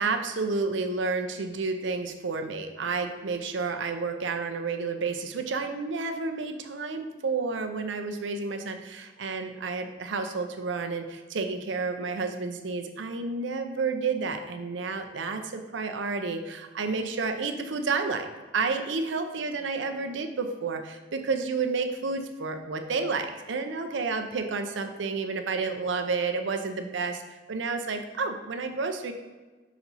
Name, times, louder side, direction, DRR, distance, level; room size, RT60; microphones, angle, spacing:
voice 1, 0.0-18.3 18.5-29.1, right 4 dB, 90° right, 6 dB, 0.6 m, -30 dB
5.8 x 4.1 x 4.0 m, 1.3 s
head